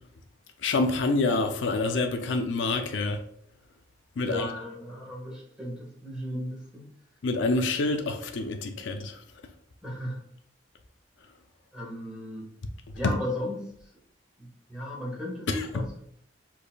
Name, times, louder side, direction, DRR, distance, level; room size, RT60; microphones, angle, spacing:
voice 1, 0.6-3.2 4.2-4.5 7.2-9.2 13.0-13.2 15.5-15.9, left 3 dB, 70° left, 0.5 m, -27 dB
voice 2, 4.2-6.9 9.8-10.2 11.7-12.5 12.9-13.7 14.4-16.0, left 1 dB, 5° right, 1.5 m, -35 dB
5.1 x 4.2 x 2.3 m
head